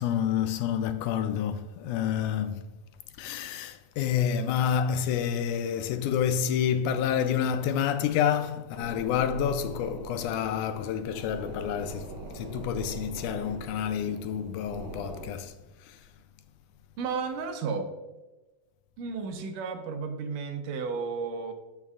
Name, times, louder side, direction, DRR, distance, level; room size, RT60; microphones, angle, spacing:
voice 1, 0.0-2.5 3.2-12.1 12.4-15.5, left 8 dB, 80° left, 1.9 m, -28 dB
sound 1, 8.7-15.2, right 3 dB, 50° right, 3.2 m, -41 dB
voice 2, 17.0-17.9 19.0-21.5, right 5 dB, 85° right, 2.5 m, -33 dB
14.5 x 5.4 x 2.4 m
omnidirectional pair, 3.8 m